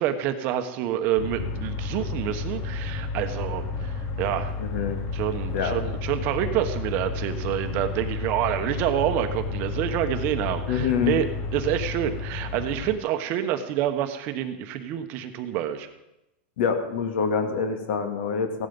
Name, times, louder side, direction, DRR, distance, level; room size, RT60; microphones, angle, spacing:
voice 1, 0.0-4.5 5.1-11.3 11.5-15.9, right 11 dB, 35° right, 8 dB, 1.1 m, -27 dB
sound 1, 1.2-13.0, left 4 dB, 30° left, 1.4 m, -31 dB
voice 2, 4.6-5.0 5.5-5.8 10.7-11.2 16.6-18.7, left 6 dB, 60° left, 6 dB, 2.3 m, -26 dB
16.0 x 12.0 x 5.3 m, 0.92 s
supercardioid pair, 170°, 6 cm